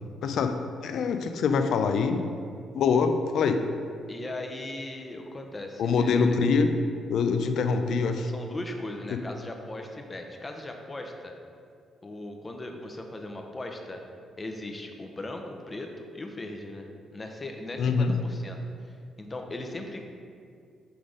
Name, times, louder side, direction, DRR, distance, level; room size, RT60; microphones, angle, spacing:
voice 1, 0.2-0.5 0.8-2.3 2.7-3.6 5.8-6.7 7.1-8.3 9.1-9.2 17.8-18.2, left 5 dB, 70° left, 7 dB, 0.4 m, -24 dB
voice 2, 4.1-6.4 8.2-11.3 12.0-14.0 14.4-18.6 19.2-20.1, left 2 dB, 25° left, 3 dB, 0.7 m, -38 dB
6.1 x 3.6 x 5.0 m, 2.3 s
cardioid pair, 90°, 0 cm